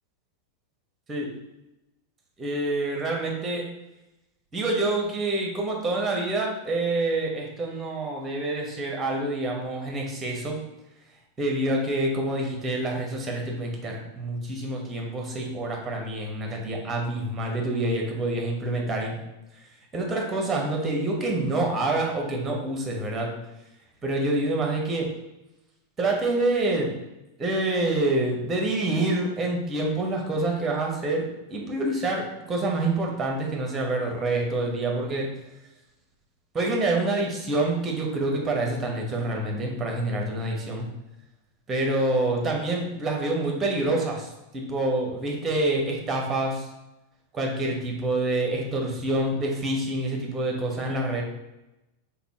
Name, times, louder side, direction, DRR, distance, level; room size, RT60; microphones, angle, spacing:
voice 1, 2.4-3.7 4.5-10.6 11.4-19.2 19.9-23.3 24.0-25.1 26.0-26.9 27.4-35.3 36.5-40.9 41.7-46.7 47.3-51.2, right 2 dB, 20° right, 0 dB, 1.0 m, -27 dB
4.1 x 3.5 x 2.9 m, 0.96 s
figure-of-eight pair, 90°, 0 cm